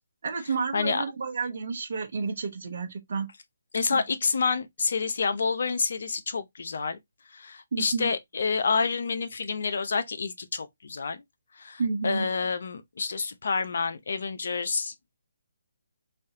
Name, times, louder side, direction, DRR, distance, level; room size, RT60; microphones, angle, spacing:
voice 1, 0.2-3.3 3.9-4.0 7.7-8.1 11.8-12.3, right 5 dB, 55° right, 0.8 m, -30 dB
voice 2, 0.7-1.0 3.7-7.0 7.3-11.2 11.6-15.2, left 5 dB, 60° left, 0.7 m, -28 dB
3.4 x 2.7 x 2.6 m
figure-of-eight pair, 150°, 0 cm